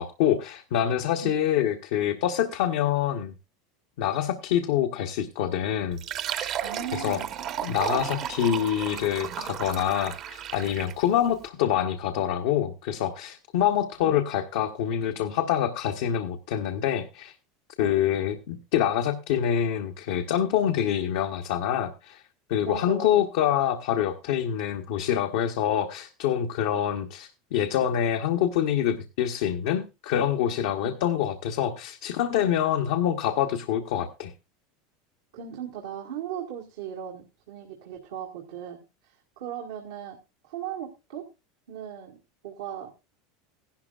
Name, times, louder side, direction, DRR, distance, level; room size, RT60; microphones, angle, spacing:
voice 1, 0.0-3.3 4.0-6.0 6.3-6.5 6.9-7.2 7.6-17.3 17.8-22.2 22.5-34.3, left 10 dB, 75° left, 4 dB, 1.0 m, -26 dB
Fill (with liquid), 5.9-11.1, right 9 dB, 50° right, 1.1 m, -33 dB
voice 2, 6.6-7.2 10.8-10.9 14.0-14.2 17.8-18.0 22.6-23.3 30.8-31.0 35.3-40.2 40.4-41.2 41.7-42.2 42.4-42.9, right 9 dB, 75° right, 0 dB, 1.7 m, -38 dB
15.5 x 11.5 x 2.4 m, 0.26 s
hypercardioid pair, 105°, 0 cm